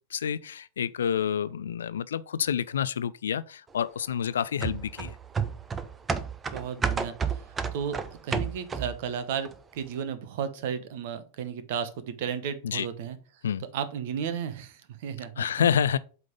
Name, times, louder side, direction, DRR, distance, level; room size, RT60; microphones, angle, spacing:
voice 1, 0.1-5.2 12.6-12.9 13.4-13.6 15.4-16.0, left 8 dB, 65° left, 0.3 m, -28 dB
sound 1, 4.6-9.1 9.4-9.5, right 6 dB, 20° right, 0.7 m, -31 dB
voice 2, 6.5-7.4 7.7-13.2 13.6-15.7, right 7 dB, 50° right, 1.0 m, -34 dB
8.0 x 3.8 x 5.1 m
figure-of-eight pair, 90°, 0 cm